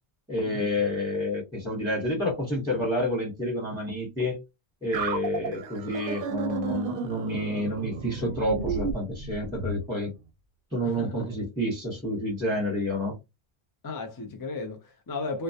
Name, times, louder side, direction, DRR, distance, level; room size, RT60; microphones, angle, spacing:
voice 1, 0.3-4.4 4.8-10.1 10.7-13.1, left 1 dB, 5° right, 0.8 m, -29 dB
sound 1, 4.9-9.8, right 4 dB, 65° right, 0.7 m, -32 dB
voice 2, 10.8-11.3 13.8-15.4, left 3 dB, 35° left, 0.3 m, -35 dB
2.2 x 2.1 x 2.6 m
omnidirectional pair, 1.1 m